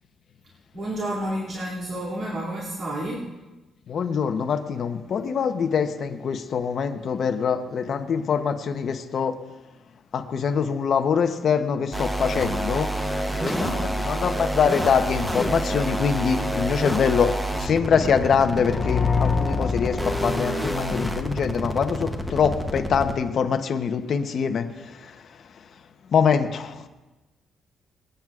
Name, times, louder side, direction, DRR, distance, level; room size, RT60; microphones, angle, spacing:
voice 1, 0.7-3.3 13.4-13.9, right 1 dB, 55° right, -7 dB, 2.5 m, -30 dB
voice 2, 3.9-9.3 10.1-12.9 13.3-25.0 26.1-26.9, left 6 dB, 50° left, 7 dB, 0.8 m, -24 dB
sound 1, 11.9-23.2, right 1 dB, 5° right, 0.8 m, -28 dB
sound 2, 18.6-21.4, left 5 dB, 30° left, 1.1 m, -26 dB
25.5 x 9.0 x 2.4 m, 1.1 s
cardioid pair, 155°, 0 cm